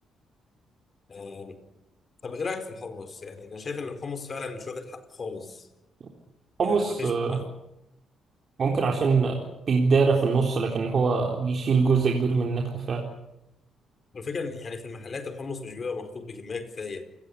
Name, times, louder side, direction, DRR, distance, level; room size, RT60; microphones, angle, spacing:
voice 1, 1.1-1.6 2.2-5.7 6.6-7.5 14.1-17.0, left 4 dB, 40° left, 9 dB, 4.5 m, -36 dB
voice 2, 6.6-7.4 8.6-9.4 9.7-13.1, right 4 dB, 50° right, 1 dB, 4.1 m, -23 dB
29.0 x 19.0 x 8.5 m, 0.88 s
cardioid pair, 90°, 0 cm